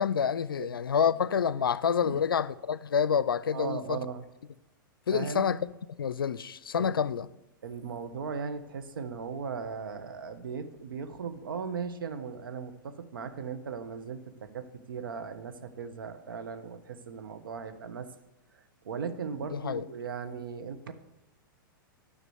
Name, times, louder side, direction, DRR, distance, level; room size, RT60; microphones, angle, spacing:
voice 1, 0.0-4.0 5.1-5.6 6.0-7.3 19.5-19.9, left 7 dB, 85° left, 0.5 m, -28 dB
voice 2, 3.5-4.2 5.1-5.5 6.8-7.0 7.6-18.1 18.8-20.9, right 6 dB, 75° right, 1.3 m, -38 dB
11.0 x 5.8 x 8.0 m
hypercardioid pair, 110°, 12 cm